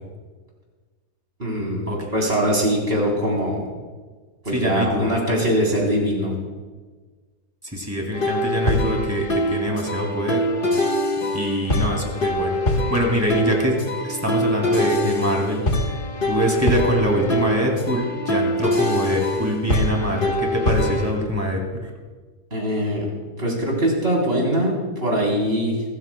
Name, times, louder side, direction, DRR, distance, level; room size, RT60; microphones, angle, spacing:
voice 1, 1.4-3.6 4.4-6.4 22.5-23.1 23.4-25.8, equal, 40° right, -3 dB, 4.3 m, -22 dB
voice 2, 4.5-5.1 7.6-10.5 11.3-13.8 14.0-15.7 16.3-21.8, equal, 10° right, 0 dB, 2.5 m, -24 dB
sound 1, 8.1-21.1, left 1 dB, 35° left, 1.4 m, -24 dB
24.5 x 14.0 x 2.3 m, 1.4 s
omnidirectional pair, 1.7 m